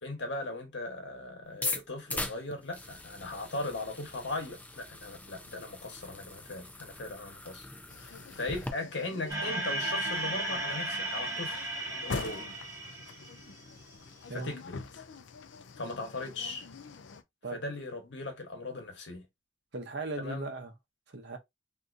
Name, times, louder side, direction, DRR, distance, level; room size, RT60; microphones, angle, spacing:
voice 1, 0.0-7.7 8.0-12.5 14.3-15.1 15.8-16.7 17.5-19.2 20.2-20.5, left 2 dB, 70° left, 1.1 m, -38 dB
sound 1, 1.5-8.7, left 2 dB, 10° left, 0.4 m, -40 dB
sound 2, 7.9-17.2, left 4 dB, 85° left, 0.5 m, -44 dB
sound 3, 9.3-13.7, right 2 dB, 15° right, 0.9 m, -35 dB
voice 2, 19.7-20.7 21.1-21.4, right 3 dB, 65° right, 0.7 m, -38 dB
3.5 x 2.7 x 2.5 m
head